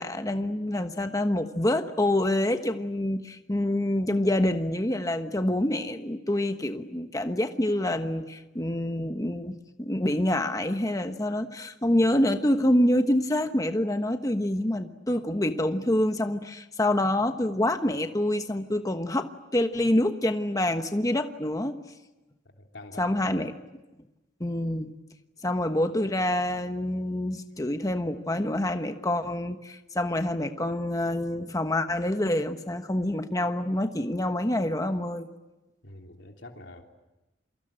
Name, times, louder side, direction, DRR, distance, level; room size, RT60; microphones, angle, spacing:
voice 1, 0.0-21.8 23.0-23.5 24.4-24.9 25.4-35.3, left 1 dB, 20° left, 7 dB, 1.2 m, -26 dB
voice 2, 22.5-23.0 35.8-36.8, left 2 dB, 75° left, 2 dB, 3.3 m, -46 dB
28.0 x 24.0 x 8.8 m, 1.0 s
head